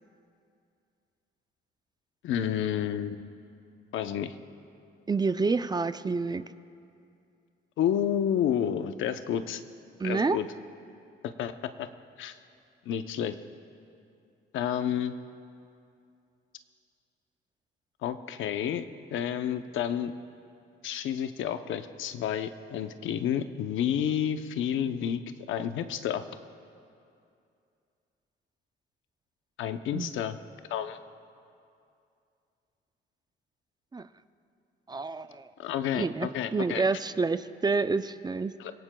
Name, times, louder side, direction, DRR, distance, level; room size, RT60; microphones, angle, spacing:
voice 1, 2.2-3.2 3.9-4.3 7.8-9.6 10.0-10.5 11.4-11.5 11.8-11.9 12.2-12.3 12.9-13.4 14.5-15.1 18.0-18.9 19.1-20.1 20.8-25.2 25.5-26.2 29.6-30.4 30.7-31.0 35.6-36.8 38.6-38.7, left 9 dB, 80° left, 9 dB, 0.7 m, -30 dB
voice 2, 5.1-6.4 10.0-10.4 29.9-30.1 33.9-34.1 34.9-35.5 36.0-38.5, right 4 dB, 20° right, 12 dB, 0.4 m, -28 dB
27.0 x 17.5 x 2.3 m, 2.5 s
cardioid pair, 90°, 20 cm